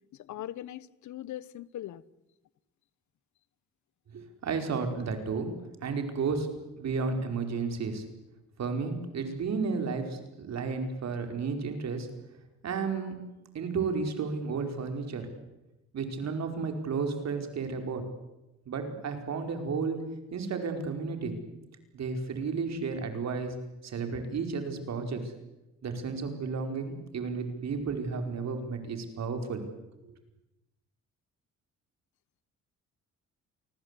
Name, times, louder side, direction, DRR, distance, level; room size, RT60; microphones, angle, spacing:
voice 1, 0.2-2.0, left 13 dB, 70° left, 1.0 m, -40 dB
voice 2, 4.1-5.5 5.8-6.5 6.8-8.0 8.6-12.1 12.6-13.1 13.5-15.3 15.9-18.0 18.7-20.0 20.3-21.3 21.9-23.5 23.8-25.2 25.8-29.6, right 5 dB, 60° right, 4.8 m, -32 dB
28.0 x 19.5 x 8.3 m
cardioid pair, 90°, 30 cm